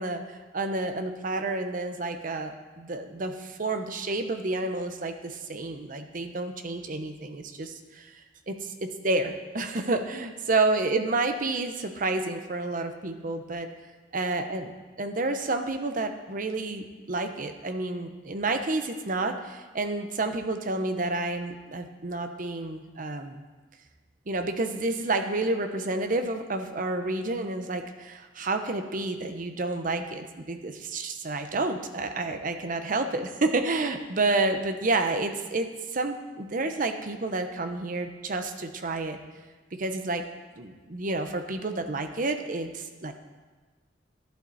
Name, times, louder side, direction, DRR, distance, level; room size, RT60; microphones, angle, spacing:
voice 1, 0.0-8.1 8.5-13.7 14.1-14.7 15.0-23.4 24.3-39.2 39.7-40.2 40.6-43.1, right 2 dB, 50° right, 7 dB, 0.8 m, -30 dB
11.5 x 11.5 x 4.2 m, 1.3 s
head